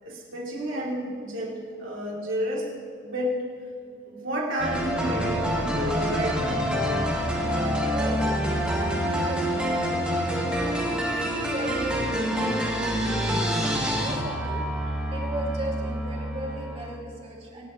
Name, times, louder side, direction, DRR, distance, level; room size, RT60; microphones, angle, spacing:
voice 1, 0.0-2.7 3.0-3.5 4.0-6.6 13.3-13.4, equal, 90° right, -3 dB, 3.1 m, -31 dB
sound 1, 4.6-17.0, equal, 5° right, 1.9 m, -27 dB
voice 2, 7.5-11.0 11.5-12.9 13.2-13.6 14.0-14.6 15.1-17.7, right 1 dB, 30° right, -2 dB, 2.5 m, -36 dB
26.5 x 11.0 x 3.2 m, 2.4 s
head